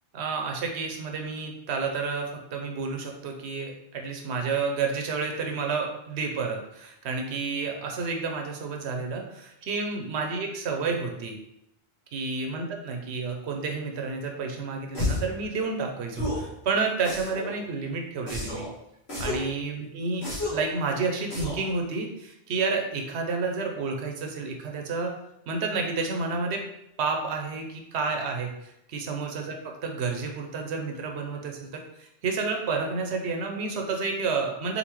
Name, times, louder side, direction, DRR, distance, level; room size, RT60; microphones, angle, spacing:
voice 1, 0.1-11.4 12.1-18.7 19.2-25.1 25.5-26.6 27.0-34.8, right 4 dB, 85° right, 3 dB, 0.9 m, -30 dB
sound 1, 14.9-15.3 16.1-16.5 17.0-17.5 18.3-18.7 19.1-19.5 20.2-20.7 21.3-21.7, left 1 dB, 75° left, 1.6 m, -31 dB
4.0 x 3.8 x 3.0 m, 0.81 s
omnidirectional pair, 1.1 m